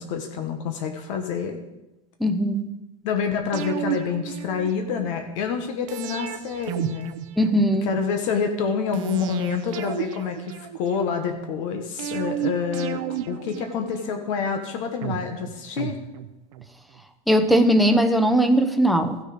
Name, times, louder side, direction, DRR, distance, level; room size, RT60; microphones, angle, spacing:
voice 1, 0.0-1.6 3.0-7.2 7.8-16.0, left 6 dB, 70° left, 5 dB, 1.3 m, -27 dB
voice 2, 2.2-2.7 7.4-7.9 17.3-19.2, right 1 dB, ahead, 8 dB, 0.7 m, -19 dB
sound 1, 3.5-5.1 5.9-8.0 8.9-11.1 12.0-14.4 15.0-16.7 17.0-17.1, right 11 dB, 80° right, 0.8 m, -32 dB
14.5 x 6.5 x 5.1 m, 1.0 s
supercardioid pair, 155°, 17 cm